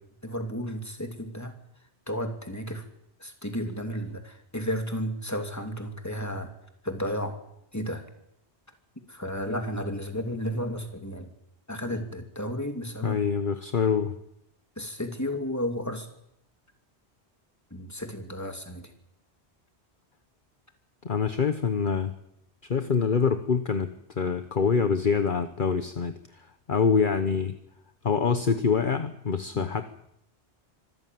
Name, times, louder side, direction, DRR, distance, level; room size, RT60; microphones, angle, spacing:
voice 1, 0.2-1.6 2.1-2.8 3.2-6.5 6.8-7.4 7.7-8.0 9.1-11.3 11.7-13.2 14.8-16.1 17.7-18.9 29.5-29.7, equal, 15° left, 5 dB, 2.8 m, -33 dB
voice 2, 13.0-14.1 21.0-22.1 22.6-27.6 28.0-29.9, left 5 dB, 50° left, 9 dB, 1.2 m, -25 dB
25.0 x 14.5 x 9.3 m, 0.78 s
omnidirectional pair, 1.1 m